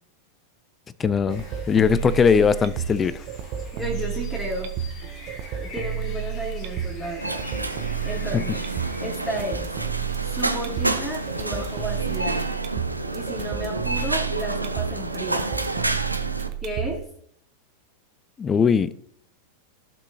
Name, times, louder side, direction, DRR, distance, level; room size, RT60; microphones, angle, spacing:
voice 1, 1.0-3.2 8.3-8.4 18.4-18.9, left 6 dB, 20° left, 0.4 m, -20 dB
sound 1, 1.0-17.0, right 9 dB, 40° right, 0.9 m, -32 dB
sound 2, 1.3-12.5, left 3 dB, 40° left, 1.9 m, -46 dB
voice 2, 3.7-4.7 5.6-7.5 8.0-8.7 9.0-9.7 10.2-12.4 13.1-15.5 16.6-17.0, equal, 5° right, 2.5 m, -33 dB
sound 3, 7.2-16.5, right 2 dB, 85° right, 0.6 m, -29 dB
14.5 x 5.9 x 2.8 m
figure-of-eight pair, 90°, 0 cm